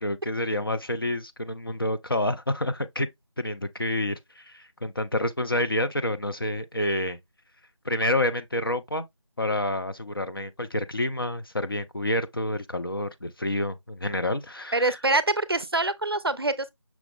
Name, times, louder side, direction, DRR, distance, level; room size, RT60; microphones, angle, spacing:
voice 1, 0.0-3.1 3.4-7.2 7.8-9.1 9.4-15.0, left 1 dB, 45° left, 0.4 m, -28 dB
voice 2, 14.7-16.7, right 2 dB, 50° right, 0.5 m, -25 dB
5.9 x 2.3 x 3.4 m
figure-of-eight pair, 175°, 16 cm